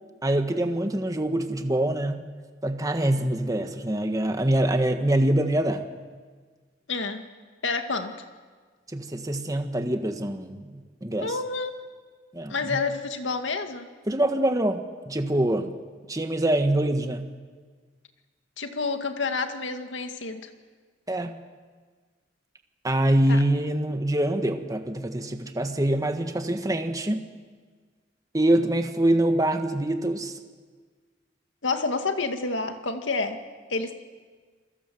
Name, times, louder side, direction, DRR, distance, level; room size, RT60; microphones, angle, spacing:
voice 1, 0.2-2.2 2.6-5.9 8.9-11.3 12.3-12.8 14.1-15.7 16.1-17.3 21.1-21.3 22.8-27.3 28.3-30.4, right 1 dB, 20° right, 6 dB, 1.5 m, -25 dB
voice 2, 6.9-7.2 7.6-8.1 11.2-11.7 12.5-13.9 18.6-20.5 23.3-23.4 31.6-33.4 33.7-34.0, left 4 dB, 90° left, 6 dB, 2.1 m, -29 dB
28.0 x 22.0 x 7.8 m, 1.5 s
head